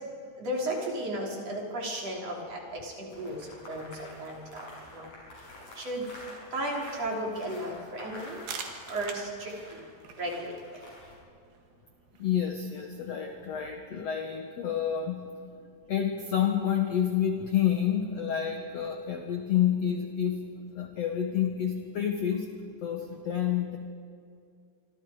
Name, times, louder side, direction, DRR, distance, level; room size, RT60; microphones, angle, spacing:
voice 1, 0.4-3.4 3.7-4.7 4.9-5.1 5.8-6.0 6.5-8.4 8.9-9.8 10.2-10.5, right 1 dB, 40° right, 0 dB, 3.7 m, -34 dB
sound 1, 3.1-11.2, left 1 dB, 45° left, 7.6 m, -48 dB
sound 2, 8.2-13.7, right 6 dB, 65° right, 3.4 m, -46 dB
voice 2, 12.2-15.3 15.9-22.5 22.8-23.8, left 9 dB, 80° left, 4 dB, 1.4 m, -29 dB
26.5 x 25.5 x 4.9 m, 2.4 s
omnidirectional pair, 4.8 m